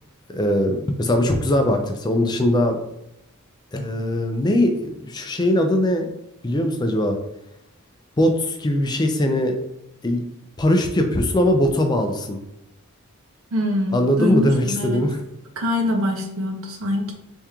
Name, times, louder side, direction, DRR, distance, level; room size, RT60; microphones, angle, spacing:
voice 1, 0.3-2.8 3.7-6.1 6.4-7.2 8.2-9.6 10.0-10.2 10.6-12.4 13.9-15.2, left 1 dB, 20° left, 4 dB, 0.4 m, -20 dB
voice 2, 13.5-15.0 15.6-17.1, left 1 dB, 65° right, 3 dB, 0.7 m, -24 dB
3.5 x 2.9 x 3.5 m, 0.86 s
head